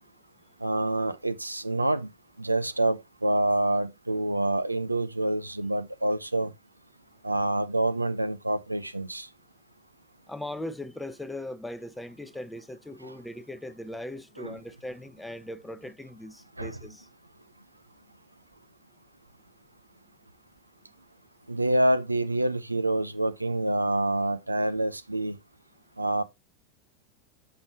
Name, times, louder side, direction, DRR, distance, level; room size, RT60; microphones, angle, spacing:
voice 1, 0.6-2.1 2.4-6.5 7.2-9.3 13.0-13.1 14.4-14.5 16.6-16.8 21.5-25.4 26.0-26.2, right 1 dB, 90° right, 0.6 m, -27 dB
voice 2, 10.3-17.1, left 1 dB, 5° left, 0.7 m, -39 dB
7.1 x 6.6 x 2.8 m
figure-of-eight pair, 90°, 0 cm